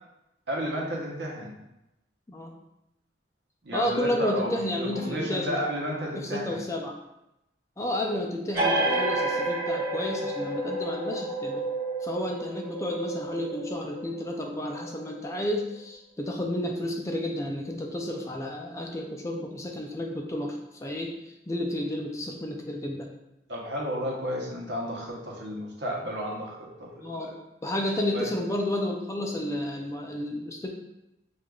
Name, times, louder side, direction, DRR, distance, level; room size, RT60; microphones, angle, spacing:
voice 1, 0.5-1.5 3.6-6.6 23.5-27.3 28.1-28.3, equal, 75° right, -2 dB, 0.9 m, -32 dB
voice 2, 3.7-5.6 6.1-7.0 7.8-11.6 12.0-21.1 21.5-23.1 27.0-27.3 27.6-30.7, left 1 dB, 15° left, 1 dB, 0.3 m, -31 dB
sound 1, 8.5-15.8, right 2 dB, 15° right, 1.0 m, -30 dB
6.3 x 2.4 x 2.3 m, 0.88 s
head